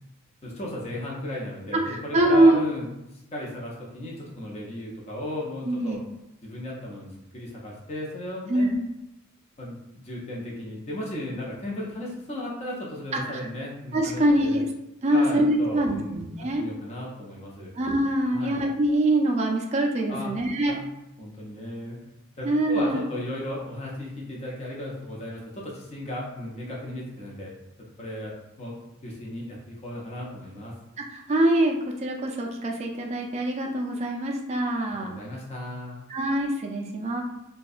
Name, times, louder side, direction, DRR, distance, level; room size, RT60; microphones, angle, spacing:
voice 1, 0.4-2.9 3.3-6.0 6.4-8.7 9.6-14.6 15.1-16.2 16.5-17.7 18.3-18.6 20.1-20.3 20.7-20.8 21.2-22.0 22.4-27.5 28.0-28.3 28.6-30.7 35.0-36.0, left 1 dB, 30° left, -4 dB, 0.5 m, -35 dB
voice 2, 1.7-2.6 5.7-6.0 8.5-8.8 13.1-13.5 13.9-14.7 15.0-16.6 17.8-20.7 22.4-23.0 31.0-35.2 36.1-37.2, right 1 dB, 30° right, 1 dB, 0.3 m, -24 dB
2.6 x 2.1 x 2.3 m, 0.89 s
head